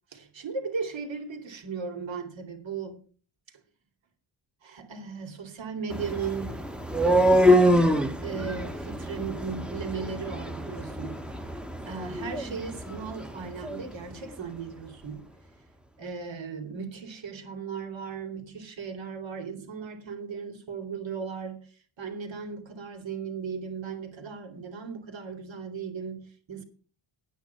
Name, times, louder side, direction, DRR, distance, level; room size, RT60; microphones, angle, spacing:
voice 1, 0.1-3.0 4.6-6.6 8.2-11.2 11.8-15.2 16.0-21.7 22.0-26.6, right 5 dB, 65° right, 2.9 m, -36 dB
sound 1, 5.9-13.9, equal, ahead, 1.1 m, -25 dB
9.4 x 9.2 x 5.8 m
cardioid pair, 110°, 49 cm